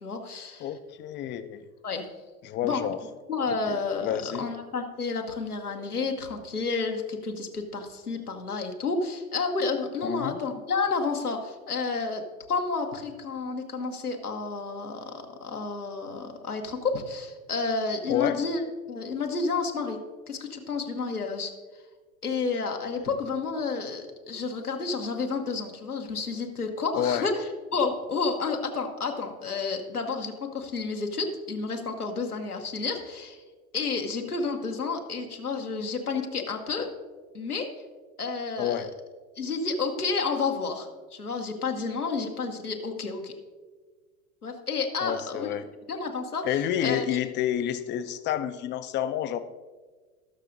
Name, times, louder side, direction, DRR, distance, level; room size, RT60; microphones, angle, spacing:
voice 1, 0.0-0.7 1.8-2.1 2.6-2.8 3.3-12.2 12.5-18.6 18.9-20.0 20.3-21.5 22.2-33.4 33.7-36.9 37.3-37.7 38.2-38.9 39.4-43.3 44.4-45.5 45.9-47.2, left 4 dB, 90° left, 3 dB, 1.2 m, -30 dB
voice 2, 0.6-1.6 2.4-3.0 3.5-4.4 10.0-10.4 18.1-18.4 27.0-27.2 38.6-38.9 45.0-45.6 46.4-49.4, left 10 dB, 25° left, 12 dB, 0.5 m, -29 dB
18.5 x 6.5 x 2.6 m, 1.4 s
figure-of-eight pair, 80°, 44 cm